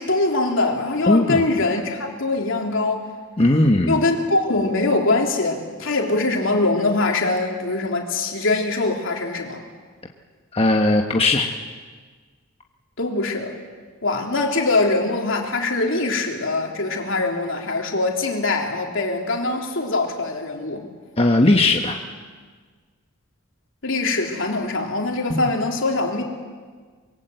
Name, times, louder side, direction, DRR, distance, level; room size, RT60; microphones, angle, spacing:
voice 1, 0.0-3.0 3.9-9.6 13.0-13.5 14.0-20.9 23.8-26.2, left 2 dB, 65° left, 1 dB, 3.5 m, -23 dB
voice 2, 1.1-1.4 3.4-4.0 10.5-11.5 21.2-22.0 25.3-25.5, left 2 dB, 30° left, 2 dB, 1.2 m, -18 dB
25.0 x 22.5 x 8.0 m, 1.5 s
head